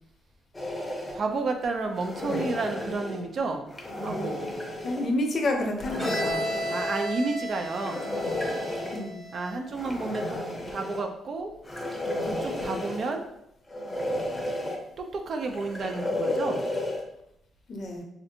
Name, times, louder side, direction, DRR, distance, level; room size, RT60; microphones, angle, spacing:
sound 1, 0.5-1.2 2.0-3.2 3.7-5.1 5.8-6.9 7.6-9.0 9.7-11.0 11.6-13.1 13.7-14.8 15.5-17.0, left 1 dB, 15° left, 0.6 m, -32 dB
voice 1, 1.1-3.7 4.0-4.4 6.2-8.0 9.3-10.4 10.7-11.5 12.2-13.2 15.0-16.7, right 3 dB, 50° right, 4 dB, 0.4 m, -31 dB
voice 2, 4.8-6.4 8.9-9.2 17.7-18.0, left 2 dB, 50° left, 3 dB, 0.6 m, -29 dB
Bowed string instrument, 6.0-9.7, equal, 15° right, 1.1 m, -34 dB
3.2 x 2.5 x 2.7 m, 0.78 s
cardioid pair, 90°, 0 cm